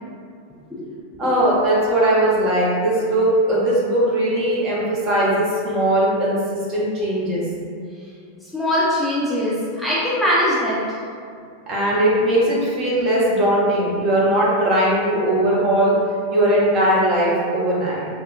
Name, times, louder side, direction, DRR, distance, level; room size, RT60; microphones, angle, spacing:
voice 1, 1.2-7.5 11.7-16.0 16.3-18.1, right 1 dB, 35° right, -6 dB, 0.8 m, -19 dB
voice 2, 8.5-10.8, equal, ahead, -9 dB, 0.5 m, -21 dB
3.5 x 2.1 x 2.4 m, 2.3 s
figure-of-eight pair, 90°, 0 cm